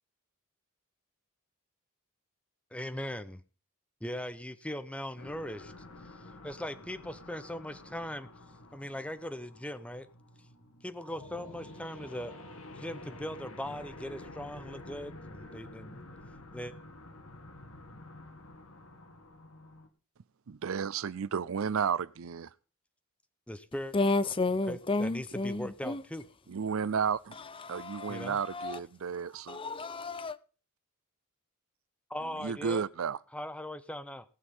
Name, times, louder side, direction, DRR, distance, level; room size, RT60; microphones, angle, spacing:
voice 1, 2.7-3.4 4.0-5.7 6.4-8.3 8.7-10.1 10.8-12.3 12.8-16.0 16.5-16.7 23.5-23.9 24.7-26.2 28.1-28.4 32.1-32.8 33.3-34.2, left 1 dB, 5° left, 0.9 m, -39 dB
sound 1, 5.2-19.9, left 2 dB, 85° left, 1.9 m, -49 dB
voice 2, 20.5-22.5 26.5-27.4 27.7-29.6 32.4-33.2, right 6 dB, 70° right, 0.5 m, -32 dB
voice 3, 23.9-26.0 27.6-28.8 29.5-30.4, left 3 dB, 25° left, 0.6 m, -32 dB
18.5 x 6.4 x 5.5 m
head